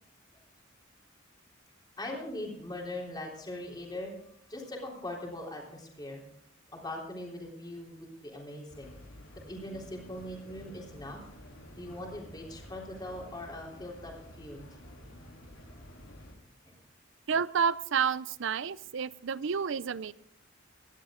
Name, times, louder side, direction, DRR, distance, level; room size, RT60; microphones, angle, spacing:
voice 1, 2.0-4.1 4.5-6.2 6.7-8.9 9.5-11.2 11.8-14.7, left 1 dB, 20° left, -1 dB, 3.5 m, -41 dB
sound 1, 8.7-16.4, equal, 85° left, 3.3 m, -50 dB
voice 2, 17.3-20.1, right 6 dB, 65° right, 18 dB, 0.5 m, -30 dB
18.5 x 12.0 x 3.8 m, 0.70 s
head